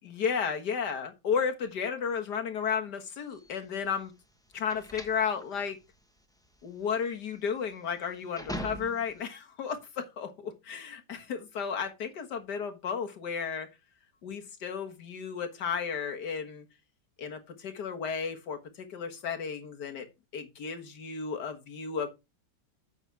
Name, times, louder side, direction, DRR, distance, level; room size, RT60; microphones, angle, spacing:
voice 1, 0.0-4.1 4.5-5.8 6.6-13.7 14.2-16.7 17.2-20.1 20.3-22.1, left 6 dB, 65° left, 2.0 m, -33 dB
sound 1, 3.3-9.3, equal, 5° left, 0.8 m, -43 dB
8.8 x 6.1 x 4.6 m
omnidirectional pair, 2.0 m